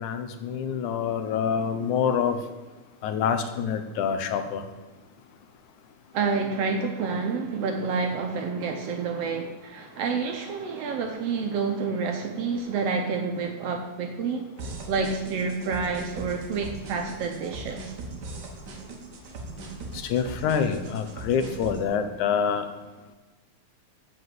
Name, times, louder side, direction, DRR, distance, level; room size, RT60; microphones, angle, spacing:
voice 1, 0.0-2.5 3.0-4.7 9.9-10.0 19.9-22.7, left 7 dB, 80° left, 2.2 m, -26 dB
voice 2, 6.1-14.5 14.9-17.9, right 5 dB, 70° right, 1.6 m, -28 dB
sound 1, 14.6-21.8, right 3 dB, 50° right, 1.3 m, -39 dB
7.9 x 6.0 x 7.7 m
omnidirectional pair, 3.4 m